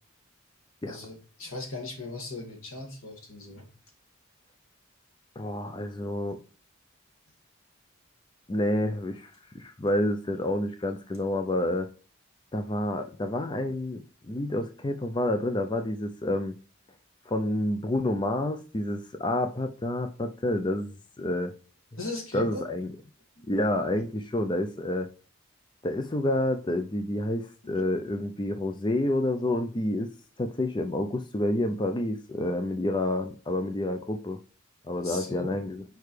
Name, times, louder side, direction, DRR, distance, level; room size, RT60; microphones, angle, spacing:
voice 1, 0.9-3.7 22.0-22.6 23.4-23.5 27.7-27.8 35.0-35.5, left 2 dB, 80° left, 2 dB, 2.2 m, -38 dB
voice 2, 5.4-6.4 8.5-11.9 12.5-14.0 14.3-16.5 17.3-21.5 22.3-22.9 23.5-25.1 25.8-30.1 30.4-34.4 34.9-35.8, left 1 dB, 20° left, 7 dB, 0.4 m, -29 dB
6.6 x 4.7 x 3.2 m, 0.38 s
head